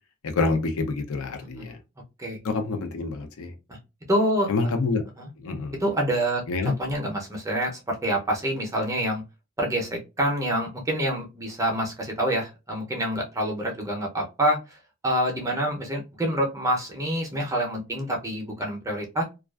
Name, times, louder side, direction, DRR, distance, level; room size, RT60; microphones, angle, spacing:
voice 1, 0.2-1.8 2.4-3.5 4.5-5.0 5.4-5.8 6.5-6.7, left 3 dB, 65° left, 0.5 m, -27 dB
voice 2, 4.1-4.7 5.2-5.3 5.8-9.2 9.6-14.8 15.0-19.2, right 1 dB, 15° right, 0.6 m, -27 dB
2.3 x 2.3 x 2.3 m
head